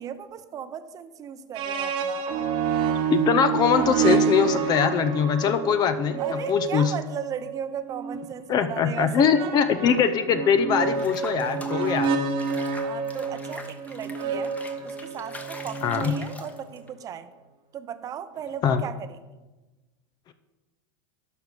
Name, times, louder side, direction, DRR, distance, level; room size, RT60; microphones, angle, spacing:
voice 1, 0.0-2.3 6.2-9.5 11.8-12.2 12.8-14.5 14.8-17.3 17.7-19.2, right 8 dB, 35° right, 11 dB, 0.7 m, -36 dB
sound 1, 1.5-8.3 9.3-16.7, right 6 dB, 50° right, 1.1 m, -28 dB
voice 2, 3.1-6.9 8.5-12.2 15.8-16.1 18.6-18.8, left 7 dB, 40° left, 10 dB, 0.7 m, -22 dB
Water / Bathtub (filling or washing), 11.0-16.9, left 2 dB, 15° left, 1.1 m, -43 dB
11.0 x 5.2 x 6.7 m, 1.2 s
supercardioid pair, 115°, 11 cm